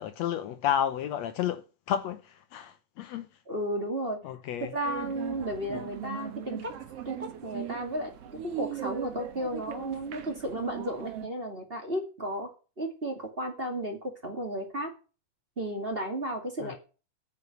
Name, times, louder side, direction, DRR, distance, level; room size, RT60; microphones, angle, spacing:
voice 1, 0.0-3.4 4.2-4.7 5.7-5.8 16.6-16.8, left 10 dB, 75° left, 1.8 m, -32 dB
voice 2, 3.5-4.2 4.6-6.7 7.0-8.1 8.6-12.5 12.8-14.9 15.6-16.8, right 1 dB, 20° right, 2.2 m, -33 dB
sound 1, 4.8-11.3, right 10 dB, 60° right, 2.0 m, -39 dB
9.2 x 7.9 x 9.3 m
omnidirectional pair, 3.4 m